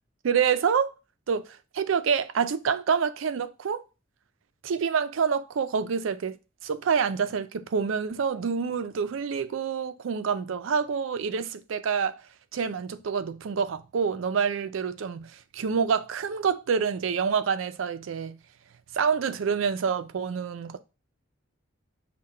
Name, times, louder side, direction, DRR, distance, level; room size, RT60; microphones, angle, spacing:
voice 1, 0.2-0.9 1.3-1.5 1.7-3.8 4.6-6.4 6.6-12.2 12.5-18.4 18.9-20.8, right 6 dB, 75° right, 0.4 m, -27 dB
5.6 x 2.2 x 4.2 m
head